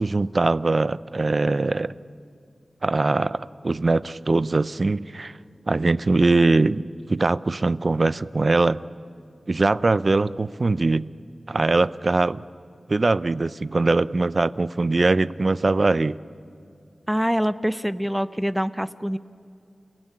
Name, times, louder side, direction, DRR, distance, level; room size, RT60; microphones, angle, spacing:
voice 1, 0.0-1.9 2.8-5.3 5.7-6.8 7.1-8.8 9.5-11.1 11.5-12.4 12.9-16.2, right 3 dB, 50° right, 18 dB, 0.6 m, -21 dB
voice 2, 17.1-19.2, equal, 5° right, 14 dB, 0.7 m, -25 dB
29.0 x 16.5 x 9.9 m, 2.4 s
wide cardioid pair, 60°, 0 cm